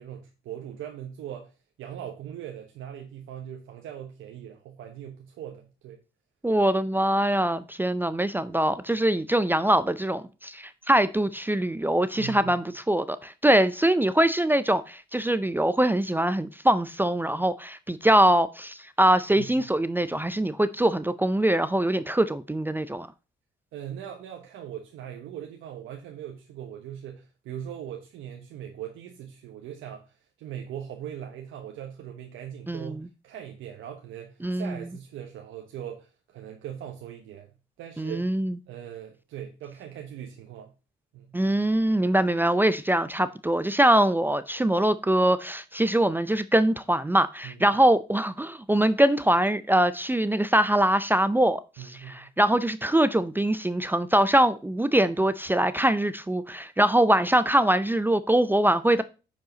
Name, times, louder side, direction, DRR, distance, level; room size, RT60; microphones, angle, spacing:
voice 1, 0.0-1.5 1.8-6.0 12.2-12.5 19.4-19.6 23.7-37.5 37.8-38.2 38.7-40.7 41.1-41.4 47.4-47.8 51.8-52.3, right 10 dB, 85° right, 1.2 m, -40 dB
voice 2, 6.4-23.1 32.7-33.1 34.4-34.9 38.0-38.6 41.3-59.0, right 1 dB, 10° right, 0.5 m, -23 dB
9.3 x 5.3 x 3.9 m
cardioid pair, 90°, 20 cm